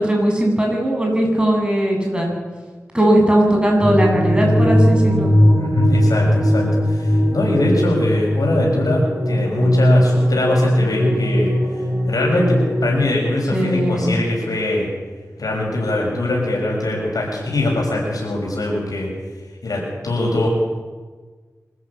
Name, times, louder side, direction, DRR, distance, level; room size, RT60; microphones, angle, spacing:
voice 1, 0.0-2.3 2.9-5.3 13.5-14.2, right 1 dB, 15° right, 0 dB, 8.0 m, -18 dB
sound 1, 3.8-12.9, equal, 40° right, 6.5 m, -18 dB
voice 2, 5.6-11.6 12.1-14.9 15.4-19.1 19.6-20.5, left 1 dB, 85° left, -2 dB, 6.3 m, -22 dB
24.5 x 14.0 x 8.7 m, 1.4 s
wide cardioid pair, 60°, 6 cm